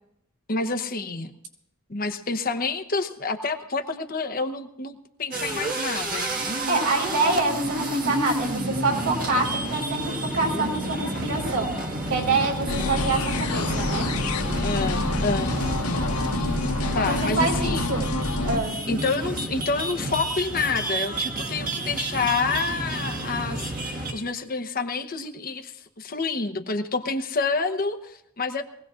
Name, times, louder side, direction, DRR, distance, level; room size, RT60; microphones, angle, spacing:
voice 1, 0.5-1.3 1.9-6.3 12.8-13.0 14.6-15.5 16.9-17.9 18.9-28.6, left 4 dB, 40° left, 7 dB, 0.9 m, -28 dB
sound 1, 5.3-24.3, right 1 dB, 40° right, 1.7 m, -30 dB
voice 2, 6.7-11.7 12.1-14.1 17.1-18.0 18.4-18.7, right 3 dB, 90° right, 0 dB, 4.3 m, -26 dB
sound 2, 12.7-18.6, left 3 dB, 85° left, 1.0 m, -28 dB
22.5 x 17.0 x 2.5 m, 0.80 s
head